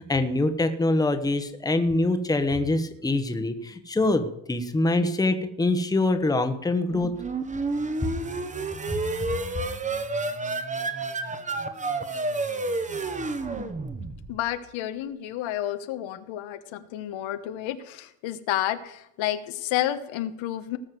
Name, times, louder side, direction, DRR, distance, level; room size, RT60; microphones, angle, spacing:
voice 1, 0.0-7.1, left 2 dB, 10° left, 8 dB, 1.1 m, -24 dB
sound 1, 6.9-14.5, right 3 dB, 15° right, 1.0 m, -30 dB
voice 2, 14.3-20.8, left 12 dB, 85° left, 10 dB, 1.4 m, -30 dB
19.0 x 6.4 x 7.7 m, 0.77 s
cardioid pair, 170°, 46 cm